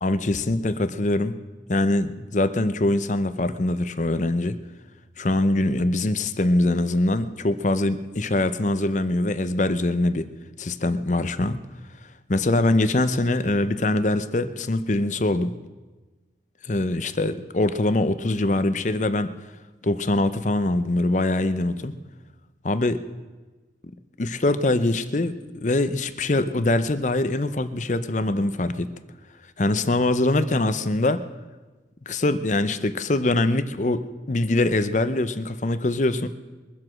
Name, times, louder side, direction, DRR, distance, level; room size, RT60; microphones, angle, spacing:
voice 1, 0.0-1.4 1.7-4.6 5.2-10.3 10.6-11.6 12.3-15.5 16.6-19.3 19.8-21.9 22.6-23.0 24.2-25.4 25.6-28.9 29.6-31.2 32.1-36.3, left 2 dB, 40° left, 12 dB, 0.7 m, -23 dB
22.5 x 7.7 x 6.3 m, 1.2 s
head